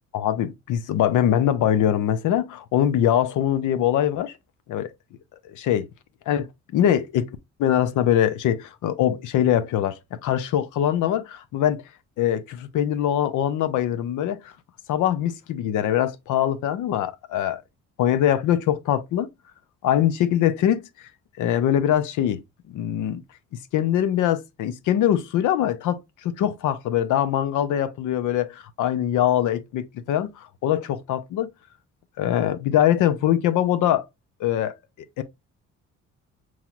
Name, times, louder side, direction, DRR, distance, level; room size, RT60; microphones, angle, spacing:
voice 1, 0.1-4.3 4.7-4.9 5.4-5.9 6.3-6.5 6.7-7.3 7.6-11.8 12.2-14.5 14.9-17.6 18.0-19.3 19.8-20.8 21.4-22.4 22.7-23.2 23.7-31.5 32.2-34.0 34.4-34.7 35.2-35.3, left 11 dB, 80° left, 0.7 m, -23 dB
5.5 x 3.1 x 2.4 m
cardioid pair, 90°, 30 cm